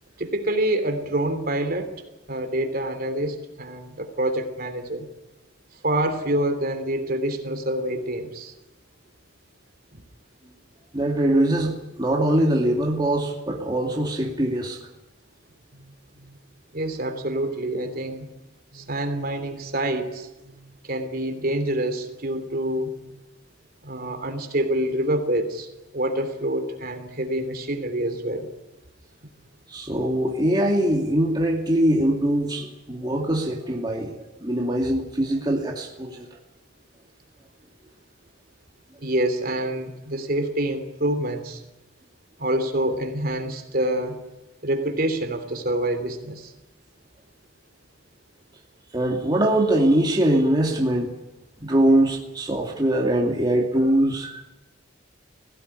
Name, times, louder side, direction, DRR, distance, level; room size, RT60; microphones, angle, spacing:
voice 1, 0.2-1.9 2.3-5.0 5.8-8.5 9.9-10.0 15.7-15.9 16.2-16.4 16.7-18.3 18.7-23.1 23.8-25.7 25.9-28.5 39.0-41.6 42.4-44.2 44.6-46.5, right 1 dB, 50° right, 7 dB, 3.2 m, -27 dB
voice 2, 10.9-14.8 29.7-36.3 48.9-51.1 51.6-54.4, right 1 dB, 20° right, -1 dB, 2.5 m, -22 dB
21.5 x 17.0 x 9.9 m, 0.98 s
head